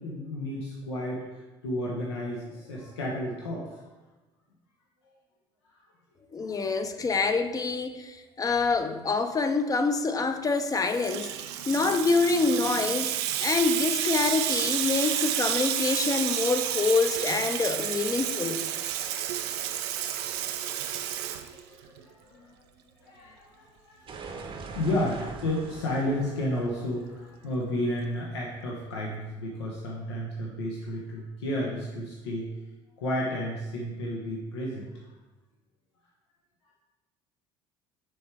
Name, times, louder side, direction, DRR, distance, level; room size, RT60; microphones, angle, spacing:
voice 1, 0.0-3.8 6.5-6.6 21.2-22.6 23.0-24.1 24.4-32.5 33.0-34.9, left 1 dB, 85° left, 0.8 m, -32 dB
voice 2, 6.3-11.3 11.7-18.6, left 4 dB, 25° left, 0.5 m, -26 dB
Water tap faucet / Sink (filling or washing), 10.6-22.0, right 10 dB, 75° right, 0.4 m, -30 dB
Piano crash, 24.1-28.8, right 4 dB, 40° right, 0.8 m, -43 dB
6.4 x 3.4 x 4.4 m
hypercardioid pair, 65°, 14 cm